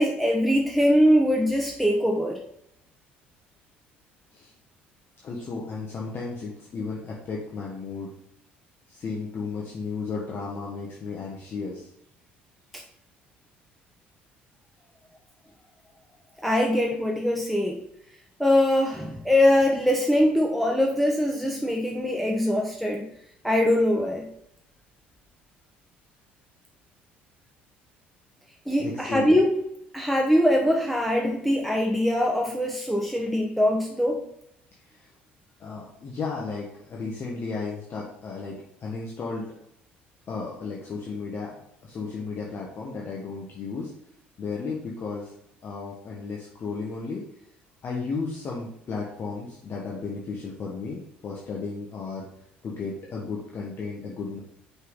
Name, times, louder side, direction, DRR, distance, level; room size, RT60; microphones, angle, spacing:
voice 1, 0.0-2.4 16.4-17.8 18.4-23.1 23.4-24.3 28.7-29.5 29.9-34.2, left 1 dB, ahead, 0 dB, 1.1 m, -22 dB
voice 2, 5.2-8.1 8.9-11.9 28.8-29.2 34.9-35.1 35.6-39.4 40.3-43.9 44.4-45.3 45.6-47.2 47.8-52.3 52.6-54.4, left 4 dB, 40° left, -4 dB, 1.5 m, -34 dB
5.7 x 5.5 x 4.0 m, 0.75 s
hypercardioid pair, 60°, 6 cm